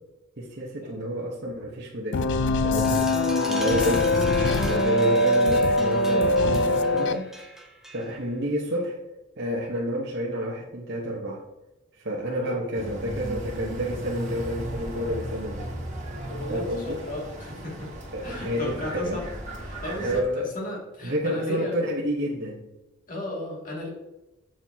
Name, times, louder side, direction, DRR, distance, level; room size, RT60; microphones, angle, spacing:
voice 1, 0.4-3.1 3.5-4.1 4.6-7.3 7.9-9.0 9.4-11.4 12.0-15.7 16.5-17.0 18.1-19.2 20.0-20.5 21.0-22.7, equal, 60° right, -3 dB, 1.0 m, -29 dB
sound 1, 2.1-7.1, left 2 dB, 60° left, 0.5 m, -22 dB
sound 2, 2.8-8.3, equal, ahead, 0.8 m, -39 dB
sound 3, 12.7-20.2, right 1 dB, 40° right, 1.9 m, -36 dB
voice 2, 16.3-17.9 18.2-19.3 19.6-21.8 23.1-23.9, left 1 dB, 45° left, -2 dB, 2.3 m, -35 dB
7.3 x 6.9 x 2.8 m, 1.0 s
head